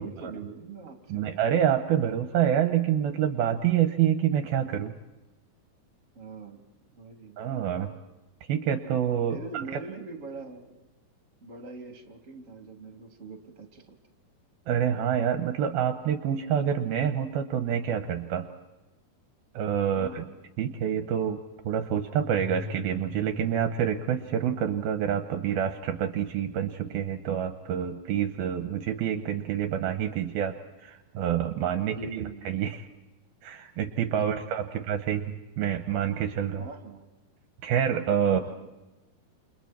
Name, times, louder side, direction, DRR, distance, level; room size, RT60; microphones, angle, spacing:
voice 1, 0.0-1.4 6.1-6.6 6.9-7.4 9.2-10.8 11.4-14.0 20.0-20.3 31.8-32.6 34.2-34.5 34.7-35.2 36.6-37.1 38.3-38.7, right 4 dB, 20° right, 3 dB, 2.8 m, -42 dB
voice 2, 1.1-4.9 7.4-7.9 8.5-9.4 14.7-18.5 19.5-20.2 20.6-21.4 21.7-30.5 30.8-32.0 32.5-32.8 33.4-35.3 35.6-36.6 37.6-38.4, right 9 dB, 75° right, 7 dB, 2.7 m, -27 dB
sound 1, 21.6-30.0, left 4 dB, 50° left, 3.3 m, -46 dB
29.5 x 28.5 x 4.5 m, 1.1 s
omnidirectional pair, 4.8 m